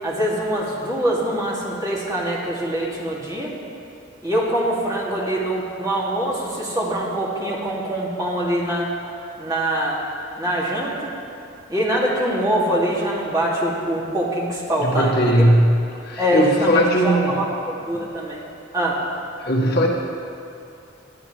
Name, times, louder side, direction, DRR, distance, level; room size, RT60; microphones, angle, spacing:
voice 1, 0.0-3.5 4.2-8.9 9.4-10.0 10.4-11.1 11.7-15.5 16.2-18.4 18.7-19.0, right 1 dB, 20° right, -6 dB, 2.6 m, -24 dB
voice 2, 14.8-17.4 19.4-19.9, equal, 55° left, -2 dB, 1.8 m, -18 dB
21.0 x 13.0 x 3.4 m, 2.6 s
head